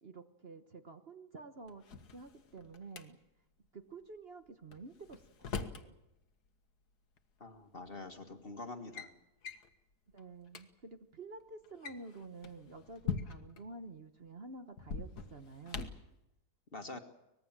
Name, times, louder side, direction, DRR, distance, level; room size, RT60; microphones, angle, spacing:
voice 1, 0.0-1.8 2.1-3.2 3.7-6.0 10.1-15.9 16.9-17.0, right 3 dB, 40° right, 8 dB, 1.3 m, -50 dB
Drawer open or close, 1.7-3.0 4.7-5.9 7.2-7.3 8.1-8.3 8.7-9.1 9.4-9.7 10.2-10.3 10.5-10.6 11.6-13.6 14.8-16.1, left 6 dB, 85° left, 2.0 m, -42 dB
voice 2, 7.4-9.1 16.7-17.0, left 2 dB, 35° left, 6 dB, 1.9 m, -45 dB
24.5 x 20.5 x 7.4 m, 0.91 s
omnidirectional pair, 1.7 m